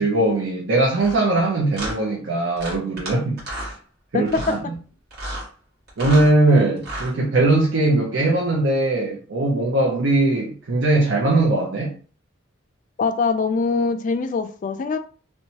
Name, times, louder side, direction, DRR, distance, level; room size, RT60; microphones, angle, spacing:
voice 1, 0.0-3.7 4.1-4.8 6.0-11.9, right 2 dB, 70° right, 0.6 m, -20 dB
sound 1, 1.0-1.2 1.7-2.0 2.6-3.1 3.4-3.7 4.3-4.6 5.1-5.5 5.9-6.3 6.8-7.1, right 1 dB, 55° right, 1.4 m, -31 dB
voice 2, 13.0-15.0, left 4 dB, 40° left, 0.3 m, -23 dB
2.7 x 2.2 x 2.8 m
head